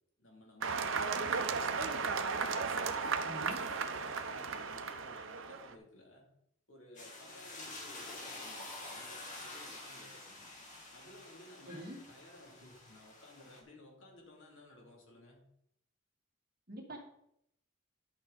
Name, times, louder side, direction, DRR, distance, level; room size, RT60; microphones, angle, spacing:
voice 1, 0.2-2.0 2.4-6.2 6.7-10.5 10.9-15.4, left 1 dB, 65° left, -1 dB, 2.8 m, -57 dB
sound 1, 0.6-5.7, right 5 dB, 70° right, 0.7 m, -35 dB
voice 2, 3.2-3.6 11.7-12.0 16.7-17.0, equal, 45° right, -1 dB, 2.3 m, -45 dB
sound 2, 7.0-13.6, left 2 dB, 40° left, 2.2 m, -48 dB
11.5 x 6.3 x 4.1 m, 0.76 s
head